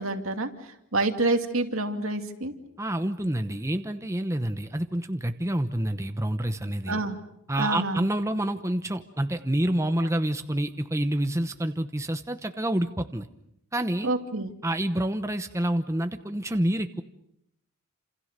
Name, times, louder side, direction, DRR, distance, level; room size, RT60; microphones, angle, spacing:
voice 1, 0.0-2.5 6.9-7.2 7.6-8.1 14.0-14.5, right 2 dB, 70° right, 6 dB, 2.5 m, -28 dB
voice 2, 2.8-7.0 7.5-13.3 13.7-14.1 14.6-17.0, right 1 dB, 15° right, 8 dB, 1.0 m, -28 dB
29.5 x 27.5 x 6.7 m, 0.76 s
head